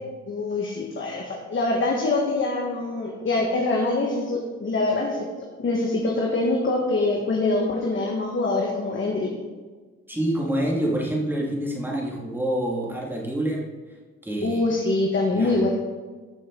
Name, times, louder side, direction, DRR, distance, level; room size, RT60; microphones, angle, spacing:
voice 1, 0.3-5.3 5.6-9.3 14.4-15.7, left 2 dB, 40° left, -1 dB, 1.7 m, -24 dB
voice 2, 10.1-13.6 14.2-14.7 15.3-15.7, right 1 dB, 5° right, -3 dB, 2.5 m, -27 dB
13.5 x 6.4 x 4.0 m, 1.4 s
cardioid pair, 90°, 30 cm